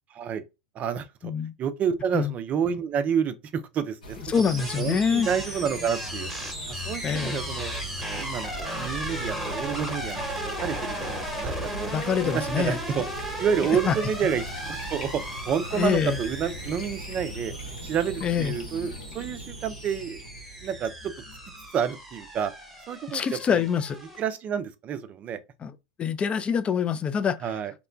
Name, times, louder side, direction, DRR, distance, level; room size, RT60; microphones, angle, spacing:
voice 1, 0.1-0.4 0.8-1.3 1.6-4.2 4.8-6.3 6.7-11.9 12.3-13.1 13.4-15.2 15.5-17.5 17.8-20.2 20.6-21.1 21.7-22.5 22.9-23.7 24.2-25.4 27.4-27.7, right 7 dB, 35° right, 0.4 m, -29 dB
voice 2, 1.2-1.5 2.1-2.3 4.3-5.3 7.0-7.4 11.9-12.8 13.9-14.0 15.7-16.2 18.2-18.5 23.1-24.0 25.6-25.7 26.0-27.4, left 7 dB, 25° left, 0.4 m, -25 dB
sound 1, 4.0-22.2, equal, 85° left, 0.8 m, -40 dB
sound 2, 4.3-24.2, right 1 dB, ahead, 1.0 m, -36 dB
2.9 x 2.1 x 2.4 m
hypercardioid pair, 95°, 4 cm